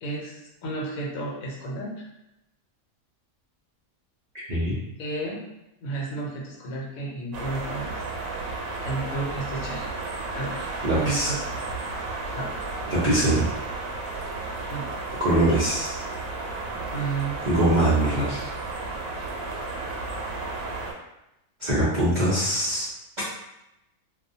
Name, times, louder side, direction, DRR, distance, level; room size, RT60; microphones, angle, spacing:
voice 1, 0.0-2.0 5.0-5.4 5.8-7.9 8.4-9.9 10.3-10.7 10.9-11.4 12.4-12.5 14.7-14.9 16.8-17.4, right 3 dB, 75° left, -3 dB, 1.1 m, -32 dB
voice 2, 4.3-4.7 10.8-11.3 12.9-13.5 15.2-16.0 17.5-18.5 21.6-22.9, right 1 dB, 55° right, -10 dB, 0.5 m, -22 dB
sound 1, 7.3-20.9, right 3 dB, 90° right, 1.1 m, -33 dB
2.3 x 2.2 x 2.6 m, 0.88 s
omnidirectional pair, 1.5 m